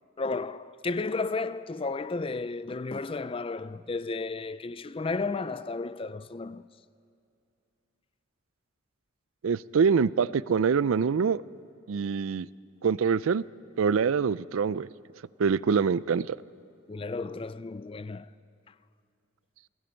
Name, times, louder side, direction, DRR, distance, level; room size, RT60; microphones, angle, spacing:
voice 1, 0.2-6.6 16.9-18.3, left 3 dB, 25° left, 0.4 m, -33 dB
voice 2, 9.4-11.4 11.9-12.5 12.8-13.4 13.8-14.9 15.4-16.4, right 6 dB, 80° right, 0.4 m, -25 dB
29.5 x 21.5 x 4.5 m
head